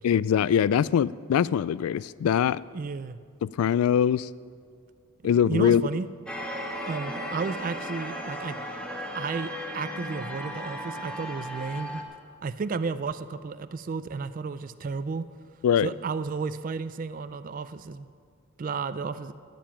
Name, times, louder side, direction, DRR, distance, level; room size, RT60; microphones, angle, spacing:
voice 1, 0.0-2.6 3.4-4.3 5.2-5.8 15.6-15.9, left 8 dB, 90° left, 18 dB, 0.3 m, -22 dB
voice 2, 2.7-3.2 5.5-6.1 6.8-8.6 9.1-12.0 12.4-15.3 15.8-18.1 18.6-19.3, right 4 dB, 40° right, 13 dB, 0.3 m, -32 dB
sound 1, 6.3-12.0, equal, 5° left, 1.1 m, -36 dB
13.5 x 9.2 x 5.9 m, 2.2 s
head